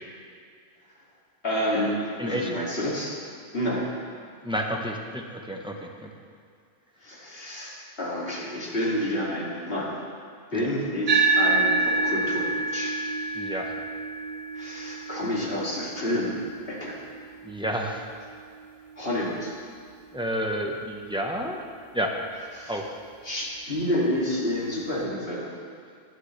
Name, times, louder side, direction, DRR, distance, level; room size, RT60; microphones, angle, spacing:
voice 1, 1.4-2.0 2.2-3.1 3.5-3.9 7.0-10.0 10.5-13.0 14.5-16.4 16.7-17.0 19.0-19.5 22.5-22.8 23.2-25.5, left 1 dB, 55° left, -6 dB, 3.0 m, -29 dB
voice 2, 2.2-2.5 4.4-6.1 10.5-10.7 13.3-13.7 17.4-18.0 20.1-21.6 21.9-22.2 22.7-22.9, equal, 5° right, 0 dB, 1.1 m, -30 dB
sound 1, 11.1-19.8, right 3 dB, 45° right, 0.8 m, -28 dB
18.5 x 11.0 x 3.4 m, 2.3 s
omnidirectional pair, 1.2 m